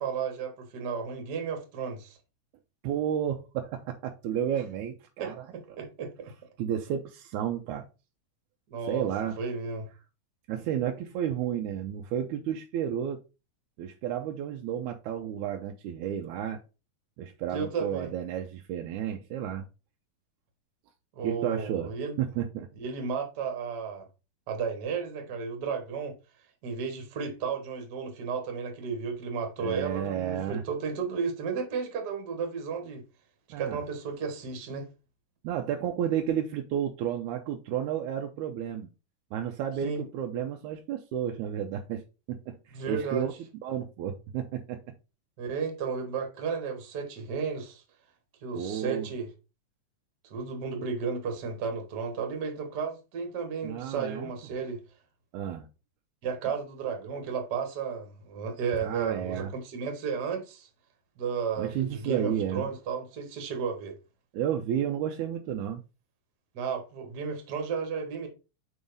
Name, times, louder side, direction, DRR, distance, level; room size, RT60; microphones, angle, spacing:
voice 1, 0.0-2.2 5.2-6.3 8.7-9.1 9.4-9.9 17.5-18.1 21.1-22.1 22.8-24.0 24.5-26.1 26.6-33.0 33.6-34.9 39.8-40.1 42.7-43.3 45.4-47.8 48.4-49.3 50.3-54.8 56.2-60.7 61.2-63.9 66.5-68.3, right 5 dB, 45° right, 1.4 m, -33 dB
voice 2, 2.8-5.5 6.6-7.9 8.9-9.4 10.5-13.2 13.8-16.6 17.2-19.7 21.2-21.9 22.2-22.7 29.6-30.6 33.5-33.8 35.4-38.9 39.3-42.0 42.3-43.3 43.6-44.8 48.5-49.1 53.6-54.3 55.3-55.7 58.8-59.5 61.6-62.7 64.3-65.8, right 9 dB, 80° right, 2.0 m, -32 dB
5.5 x 3.5 x 5.1 m
omnidirectional pair, 3.7 m